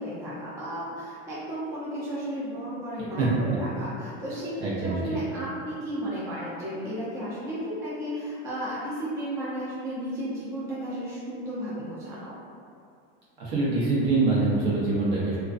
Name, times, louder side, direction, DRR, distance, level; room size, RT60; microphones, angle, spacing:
voice 1, 0.0-12.3, equal, 10° right, -9 dB, 0.4 m, -33 dB
voice 2, 4.6-5.2 13.4-15.4, right 3 dB, 75° right, -7 dB, 0.9 m, -24 dB
2.3 x 2.1 x 2.4 m, 2.3 s
supercardioid pair, 150°, 30 cm